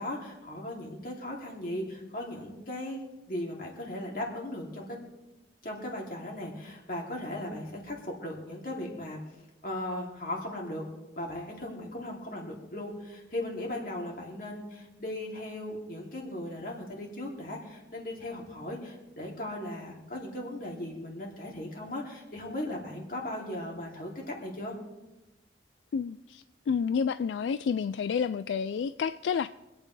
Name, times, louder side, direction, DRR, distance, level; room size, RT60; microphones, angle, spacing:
voice 1, 0.0-5.0 5.6-9.2 9.6-10.8 11.2-24.7, left 1 dB, 50° left, -1 dB, 2.8 m, -37 dB
voice 2, 25.9-29.5, left 6 dB, 80° left, 13 dB, 0.3 m, -30 dB
25.5 x 8.8 x 3.3 m, 1.1 s
head